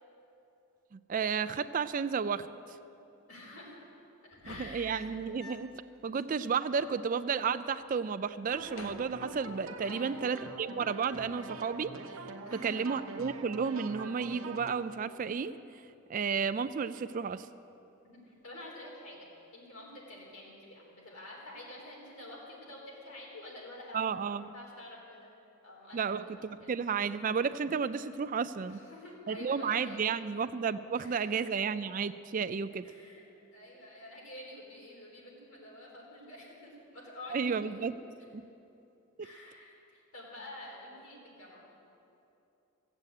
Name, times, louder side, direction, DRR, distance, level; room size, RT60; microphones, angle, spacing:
voice 1, 0.9-2.5 4.5-11.9 12.5-15.6 16.1-17.5 23.9-24.5 25.9-26.2 26.7-28.8 29.3-32.9 37.3-38.0 38.3-38.4, right 6 dB, 40° right, 14 dB, 0.3 m, -32 dB
voice 2, 3.3-3.9 4.3-5.1 9.8-10.1 12.4-12.8 18.0-25.3 25.6-26.7 28.7-30.0 30.9-31.5 32.8-33.2 33.5-37.9 39.2-41.7, left 1 dB, 85° left, -4 dB, 3.9 m, -48 dB
sound 1, 4.3-5.9 6.2-6.3 6.5-7.5 7.8-8.1 8.5-9.9 11.1-11.5, left 3 dB, 60° left, 0.8 m, -52 dB
sound 2, 8.5-14.8, right 3 dB, 75° right, 0.9 m, -44 dB
15.5 x 8.0 x 8.3 m, 2.8 s
head